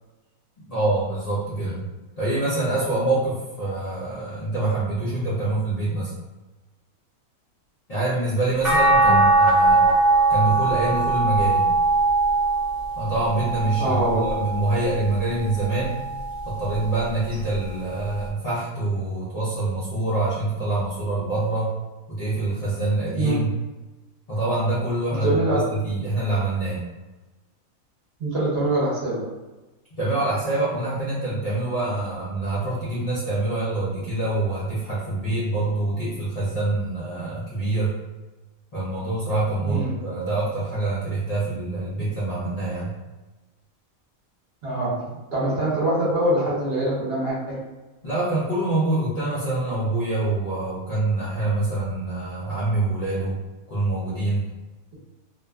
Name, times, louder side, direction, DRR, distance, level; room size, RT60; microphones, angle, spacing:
voice 1, 0.7-1.8 2.2-6.1 7.9-9.8 10.3-11.7 13.0-16.0 16.4-21.7 22.1-23.5 24.3-26.8 30.0-37.9 38.7-42.9 48.0-53.4 53.7-54.4, right 2 dB, 75° left, -9 dB, 0.3 m, -25 dB
sound 1, 8.6-14.9 15.5-16.9 18.3-18.4, right 2 dB, 5° right, 0.4 m, -21 dB
voice 2, 13.8-14.2 23.1-23.4 25.1-25.6 28.2-29.3 39.6-40.0 44.6-47.6, right 1 dB, 55° right, -6 dB, 0.8 m, -24 dB
2.5 x 2.2 x 2.2 m, 1.2 s
omnidirectional pair, 1.5 m